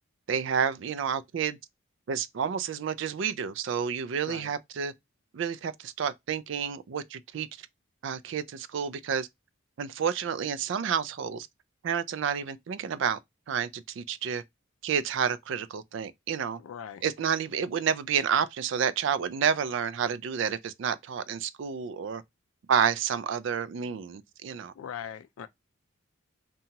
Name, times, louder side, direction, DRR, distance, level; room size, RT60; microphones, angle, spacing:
voice 1, 0.3-1.6 2.1-4.9 5.3-7.5 8.0-9.3 9.8-11.5 11.8-13.2 13.5-14.4 14.8-16.6 17.0-22.2 22.7-24.7, right 7 dB, 60° right, 0.3 m, -30 dB
voice 2, 16.6-17.1 24.8-25.5, left 8 dB, 80° left, 0.3 m, -40 dB
2.8 x 2.3 x 2.6 m
head